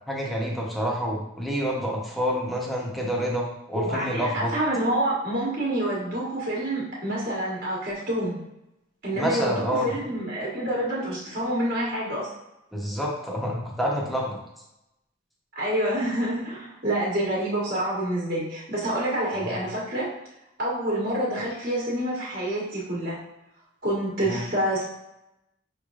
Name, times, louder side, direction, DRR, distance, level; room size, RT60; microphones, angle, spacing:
voice 1, 0.1-4.5 9.1-9.9 12.7-14.4 19.4-19.6 24.2-24.5, equal, ahead, -3 dB, 0.8 m, -28 dB
voice 2, 3.7-8.4 9.0-12.3 15.5-20.1 20.6-23.2 23.8-24.8, right 1 dB, 45° right, -5 dB, 1.3 m, -27 dB
5.8 x 3.1 x 2.4 m, 0.87 s
head